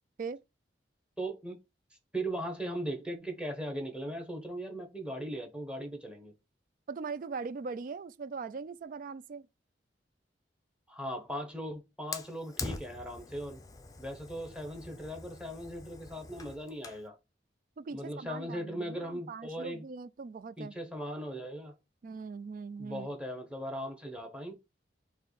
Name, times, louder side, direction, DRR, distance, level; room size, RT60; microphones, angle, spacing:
voice 1, 1.2-1.6 2.1-6.3 10.9-13.6 14.0-17.2 17.9-19.8 20.6-21.7 22.8-24.5, right 1 dB, 5° right, 1.0 m, -38 dB
voice 2, 6.9-9.5 17.8-20.7 22.0-23.1, right 4 dB, 45° right, 0.3 m, -40 dB
Fire, 12.1-17.1, left 3 dB, 20° left, 0.5 m, -44 dB
4.4 x 3.0 x 4.0 m
head